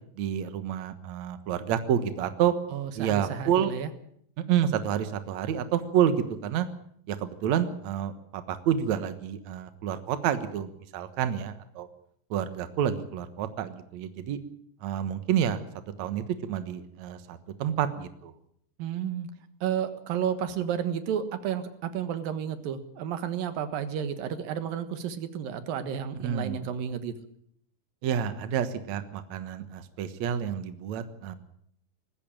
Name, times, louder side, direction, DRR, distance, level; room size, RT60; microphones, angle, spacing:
voice 1, 0.2-2.5 3.0-3.8 4.4-6.7 7.1-11.9 12.3-14.4 14.8-15.6 16.0-18.3 26.2-26.7 28.0-31.3, right 9 dB, 60° right, 10 dB, 2.4 m, -29 dB
voice 2, 2.7-3.9 18.8-19.3 19.6-27.1, right 8 dB, 85° right, 10 dB, 3.2 m, -32 dB
19.5 x 16.0 x 8.8 m, 0.67 s
omnidirectional pair, 3.9 m